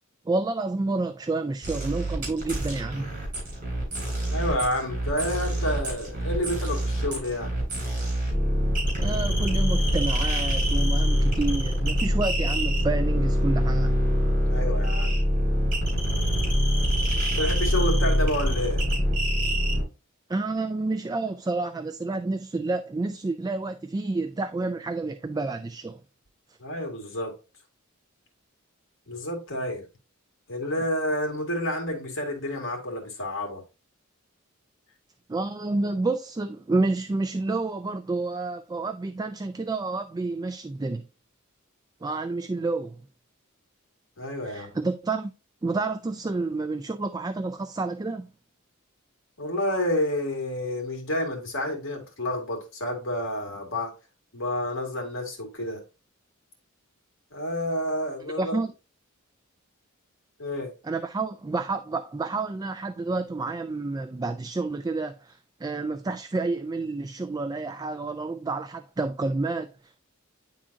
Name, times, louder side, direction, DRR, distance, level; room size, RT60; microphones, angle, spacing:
voice 1, 0.3-3.1 9.0-14.0 20.3-26.0 35.3-41.1 42.0-43.0 44.5-45.3 45.6-48.3 58.4-58.7 60.8-69.9, right 3 dB, 20° right, 0.3 m, -29 dB
sound 1, 1.6-19.8, equal, 40° right, 3.7 m, -25 dB
voice 2, 4.3-7.5 14.5-15.3 17.4-18.8 26.6-27.4 29.1-29.8 30.5-33.6 44.2-44.8 49.4-54.0 54.3-55.8 57.3-58.6 60.4-60.7, left 1 dB, 65° left, 2.0 m, -29 dB
9.8 x 3.7 x 2.6 m
head